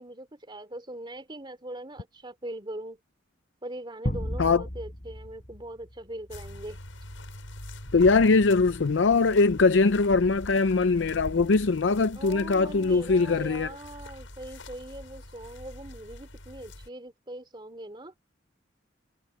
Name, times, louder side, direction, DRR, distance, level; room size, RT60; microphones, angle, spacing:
voice 1, 0.0-3.0 3.6-6.8 12.1-18.1, right 1 dB, 25° right, 3.4 m, -41 dB
sound 1, 4.0-6.6, equal, 40° left, 5.5 m, -34 dB
sound 2, 6.3-16.9, left 1 dB, 85° left, 7.4 m, -43 dB
voice 2, 7.9-13.7, left 4 dB, 70° left, 0.6 m, -22 dB
head